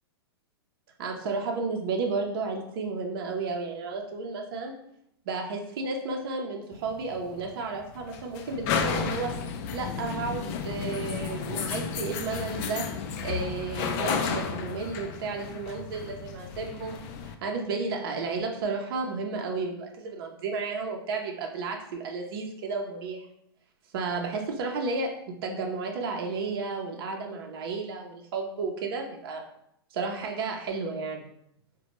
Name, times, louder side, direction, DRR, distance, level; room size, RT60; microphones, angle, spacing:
voice 1, 1.0-4.7 5.3-9.3 9.7-12.9 13.2-23.3 23.9-25.1 25.4-29.4 29.9-31.2, right 4 dB, 60° right, 1 dB, 0.6 m, -32 dB
sound 1, 6.7-17.3, left 6 dB, 45° left, 0.4 m, -33 dB
4.1 x 2.2 x 2.9 m, 0.74 s
hypercardioid pair, 120°, 13 cm